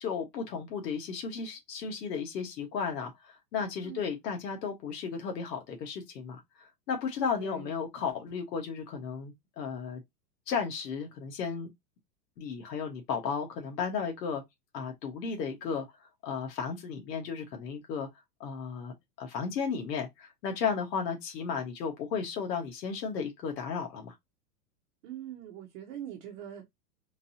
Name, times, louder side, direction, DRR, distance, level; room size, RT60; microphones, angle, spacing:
voice 1, 0.0-10.0 10.5-11.7 12.4-14.4 14.7-15.9 16.2-18.1 18.4-24.1, left 6 dB, 85° left, 1.4 m, -34 dB
voice 2, 3.8-4.1 7.2-7.7 25.0-26.7, right 10 dB, 50° right, 0.9 m, -43 dB
3.9 x 2.6 x 2.7 m
supercardioid pair, 150°, 48 cm